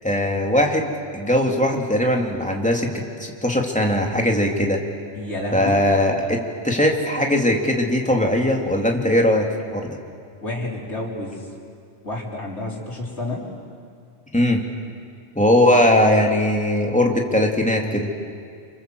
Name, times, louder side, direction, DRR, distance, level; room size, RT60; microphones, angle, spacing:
voice 1, 0.0-4.8 5.5-10.0 14.3-14.6 15.3-18.1, left 1 dB, 5° left, 1 dB, 2.8 m, -20 dB
voice 2, 5.1-5.8 10.4-11.5 12.0-13.4, left 2 dB, 80° left, -2 dB, 4.5 m, -30 dB
29.5 x 25.5 x 7.8 m, 2.2 s
omnidirectional pair, 1.1 m